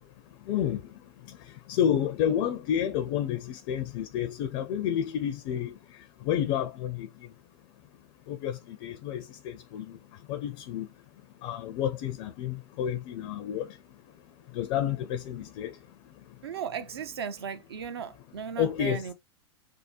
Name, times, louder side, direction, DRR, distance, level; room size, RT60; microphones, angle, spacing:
voice 1, 0.5-0.8 1.7-5.7 6.3-7.1 8.3-10.0 10.3-10.9 11.4-13.7 14.5-15.7 18.6-19.1, left 9 dB, 40° left, 0.4 m, -30 dB
voice 2, 16.4-19.1, right 7 dB, 65° right, 0.6 m, -36 dB
3.4 x 2.1 x 2.7 m
figure-of-eight pair, 95°, 14 cm